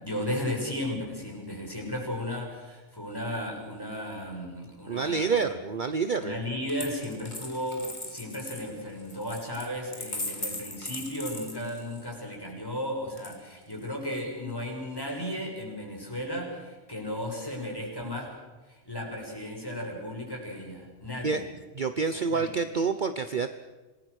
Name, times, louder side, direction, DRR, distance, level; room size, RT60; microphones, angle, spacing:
voice 1, 0.0-5.4 6.2-18.4 18.7-21.4 22.1-22.5, left 1 dB, 20° left, 0 dB, 6.4 m, -35 dB
voice 2, 4.9-6.3 21.2-21.4 21.8-23.5, right 5 dB, 45° right, 9 dB, 1.0 m, -28 dB
Coin (dropping), 6.7-12.1 13.2-13.9, left 2 dB, 35° left, 3.4 m, -39 dB
27.0 x 19.5 x 6.5 m, 1.2 s
omnidirectional pair, 1.3 m